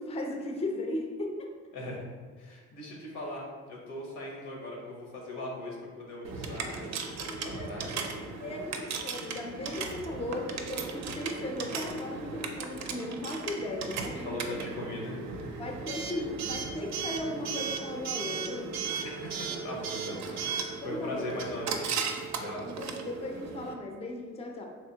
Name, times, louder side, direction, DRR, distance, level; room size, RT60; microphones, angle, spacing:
voice 1, 0.0-1.5 7.3-8.0 8.4-14.6 15.6-18.7 20.8-21.3 22.6-24.7, left 1 dB, 20° left, 2 dB, 0.4 m, -37 dB
voice 2, 2.4-8.3 14.0-15.2 19.0-22.1 22.3-22.7, left 1 dB, 85° left, -2 dB, 1.0 m, -40 dB
Coin (dropping) / Alarm, 6.2-23.7, right 5 dB, 65° right, 0.4 m, -36 dB
3.4 x 2.8 x 2.8 m, 1.5 s
cardioid pair, 90°, 30 cm